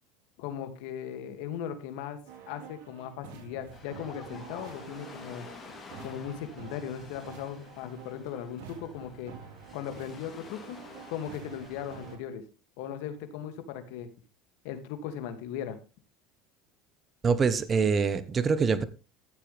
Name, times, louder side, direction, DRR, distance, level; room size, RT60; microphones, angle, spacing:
voice 1, 0.4-2.2 2.5-5.5 6.0-9.3 9.7-10.8 11.1-12.4 12.8-14.1 14.6-15.8, left 9 dB, 75° left, 9 dB, 2.4 m, -38 dB
sound 1, 2.3-12.2, right 7 dB, 80° right, 3.8 m, -48 dB
Ocean, 3.7-12.1, left 4 dB, 25° left, 3.4 m, -50 dB
voice 2, 17.2-18.8, right 5 dB, 30° right, 13 dB, 1.1 m, -25 dB
14.5 x 7.7 x 3.5 m, 0.31 s
supercardioid pair, 120°, 0 cm